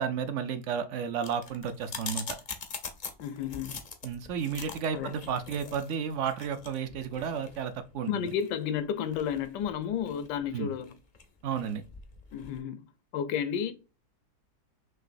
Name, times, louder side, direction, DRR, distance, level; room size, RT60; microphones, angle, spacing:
voice 1, 0.0-2.4 4.0-8.4 10.5-10.7 11.4-11.8, right 7 dB, 70° right, 0.7 m, -32 dB
sound 1, 1.2-12.6, left 5 dB, 65° left, 0.4 m, -43 dB
voice 2, 3.2-3.8 4.9-5.1 8.1-11.0 12.3-12.9 13.1-13.7, left 8 dB, 85° left, 1.2 m, -32 dB
6.0 x 2.7 x 2.5 m
omnidirectional pair, 1.8 m